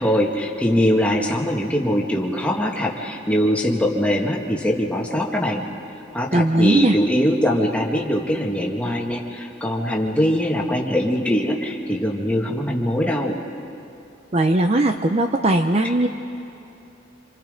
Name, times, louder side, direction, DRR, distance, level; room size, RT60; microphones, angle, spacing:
voice 1, 0.0-5.6 6.1-13.4 15.8-15.9, equal, 5° left, -1 dB, 1.8 m, -22 dB
voice 2, 6.3-6.9 14.3-16.1, right 1 dB, 30° right, 6 dB, 0.7 m, -18 dB
27.0 x 27.0 x 5.2 m, 2.8 s
head